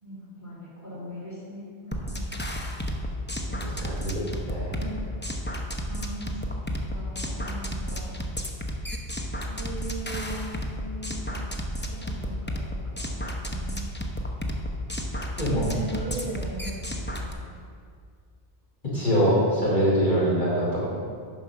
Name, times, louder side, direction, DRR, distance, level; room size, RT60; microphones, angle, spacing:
voice 1, 0.0-2.4 3.4-3.9 4.7-5.4 5.9-6.5 6.8-8.1 9.4-11.5 11.8-13.2 13.4-13.9 15.4-17.5, right 1 dB, 15° right, -8 dB, 2.9 m, -39 dB
sound 1, 1.9-17.3, equal, 10° left, 0.6 m, -32 dB
voice 2, 3.6-4.2 4.5-4.7 15.4-15.6 18.9-20.9, equal, 50° left, -7 dB, 3.1 m, -23 dB
9.8 x 5.7 x 6.1 m, 2.1 s
omnidirectional pair, 1.1 m